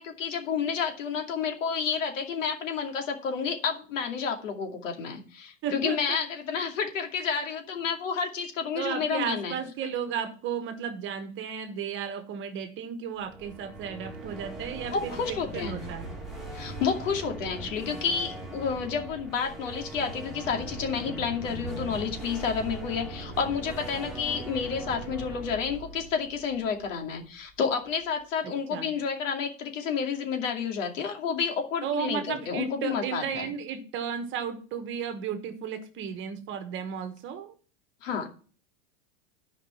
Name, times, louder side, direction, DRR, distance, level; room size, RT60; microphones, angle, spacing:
voice 1, 0.0-9.6 14.9-15.8 16.5-33.5 38.0-38.3, left 6 dB, 90° left, 3 dB, 2.5 m, -30 dB
voice 2, 5.6-6.2 8.8-16.1 28.4-28.9 31.8-37.5, right 7 dB, 30° right, 9 dB, 1.3 m, -34 dB
sound 1, 13.2-27.2, right 2 dB, ahead, 2.0 m, -40 dB
11.0 x 5.2 x 5.7 m, 0.40 s
supercardioid pair, 140°, 37 cm